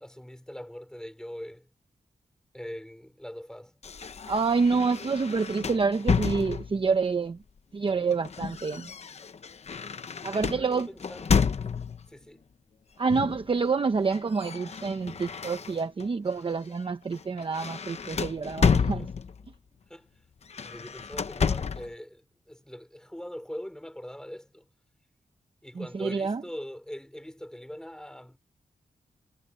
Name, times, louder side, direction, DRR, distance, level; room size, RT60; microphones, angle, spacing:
voice 1, 0.0-1.7 2.5-3.8 10.3-11.3 12.1-12.5 18.6-19.1 19.9-20.2 20.6-24.7 25.6-28.4, equal, 5° left, 4.4 m, -42 dB
sound 1, 3.8-6.9 7.9-12.1 13.1-13.5 13.8-16.1 16.5-16.7 17.1-19.5 20.4-21.9, left 6 dB, 50° left, 0.9 m, -30 dB
voice 2, 4.3-7.4 7.7-8.9 10.2-10.9 13.0-19.1 25.7-26.4, right 4 dB, 40° right, 1.0 m, -27 dB
wide cardioid pair, 160°, 14 cm